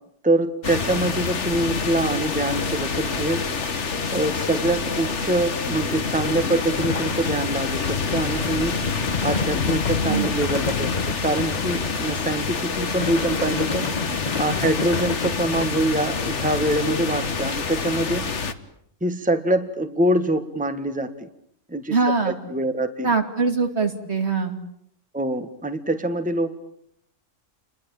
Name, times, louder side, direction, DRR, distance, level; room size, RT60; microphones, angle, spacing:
voice 1, 0.2-3.4 4.1-8.8 9.2-13.9 14.4-18.3 19.0-21.3 21.7-22.0 22.2-23.1 25.1-26.5, right 1 dB, 5° right, 8 dB, 1.6 m, -24 dB
sound 1, 0.6-18.5, left 5 dB, 60° left, 1.8 m, -27 dB
sound 2, 6.3-12.4 12.8-15.7, left 4 dB, 35° left, 1.3 m, -31 dB
voice 2, 21.9-22.3 23.0-24.6, right 4 dB, 55° right, 6 dB, 3.1 m, -22 dB
29.5 x 22.5 x 8.9 m, 0.71 s
omnidirectional pair, 1.3 m